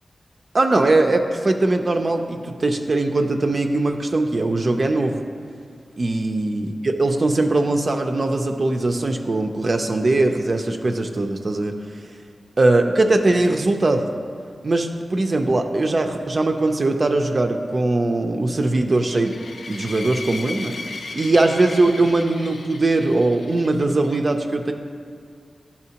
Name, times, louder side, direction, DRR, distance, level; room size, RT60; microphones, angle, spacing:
voice 1, 0.5-5.2 6.0-11.7 12.6-14.1 14.6-19.3 19.7-20.8 21.1-24.7, right 2 dB, 45° right, 4 dB, 0.4 m, -20 dB
sound 1, 18.9-24.2, left 3 dB, 80° left, 0.4 m, -36 dB
11.0 x 4.2 x 2.8 m, 2.3 s
wide cardioid pair, 95°, 0 cm